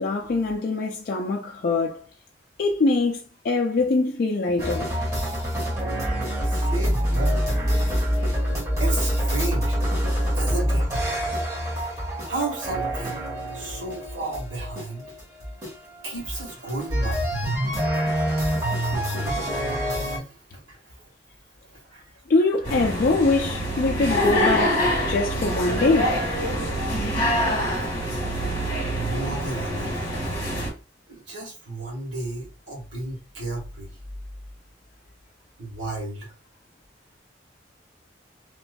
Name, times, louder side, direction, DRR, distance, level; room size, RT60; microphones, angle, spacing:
voice 1, 0.0-2.0 2.6-4.9 22.3-26.2, left 3 dB, 50° left, 0.4 m, -23 dB
sound 1, 4.6-20.2, equal, 20° right, 1.2 m, -25 dB
voice 2, 6.4-7.4 8.8-9.8 10.3-10.9 12.3-13.2 13.5-15.0 16.0-17.3 20.1-20.8 21.8-22.1 28.9-30.3 31.1-33.9 35.6-36.3, right 2 dB, 75° right, 1.5 m, -33 dB
sound 2, 22.6-30.7, equal, 30° left, 1.3 m, -25 dB
2.9 x 2.5 x 2.2 m
head